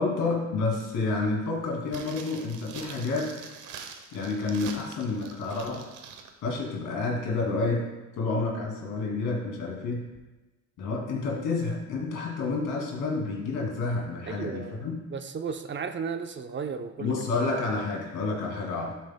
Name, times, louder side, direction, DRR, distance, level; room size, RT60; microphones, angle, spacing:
voice 1, 0.0-3.4 4.1-5.9 6.4-7.9 8.2-10.1 10.8-15.0 17.0-18.9, left 3 dB, 85° left, -1 dB, 2.5 m, -29 dB
sound 1, 1.9-6.3 6.6-6.7, right 6 dB, 90° right, 0.9 m, -44 dB
voice 2, 14.3-14.8 15.1-17.2, right 6 dB, 40° right, 8 dB, 0.6 m, -34 dB
12.0 x 7.8 x 2.2 m, 1.1 s
cardioid pair, 90°, 30 cm